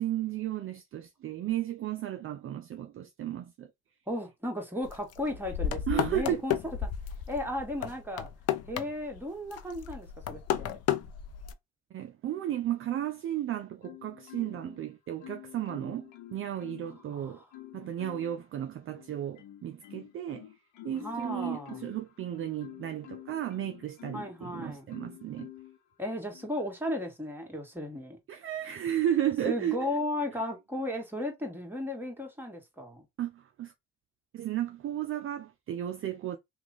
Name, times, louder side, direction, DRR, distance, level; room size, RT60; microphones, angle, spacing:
voice 1, 0.0-3.7 5.9-6.4 11.9-17.4 17.7-20.5 20.8-25.5 28.3-29.9 33.2-33.7 34.3-36.4, right 11 dB, 45° right, 0.5 m, -34 dB
voice 2, 4.1-6.9 7.3-8.3 8.7-10.8 17.1-17.4 20.9-21.8 24.1-24.9 26.0-28.2 29.4-33.0, left 1 dB, 5° right, 1.6 m, -35 dB
sound 1, 4.8-9.2 9.5-11.5, left 10 dB, 55° left, 0.6 m, -33 dB
Marimba xylophone, 13.8-14.8 15.2-17.0 17.5-18.4 18.9-24.4 24.9-25.8 26.3-26.6, left 13 dB, 70° left, 1.0 m, -48 dB
2.9 x 2.3 x 3.9 m
supercardioid pair, 75°, 31 cm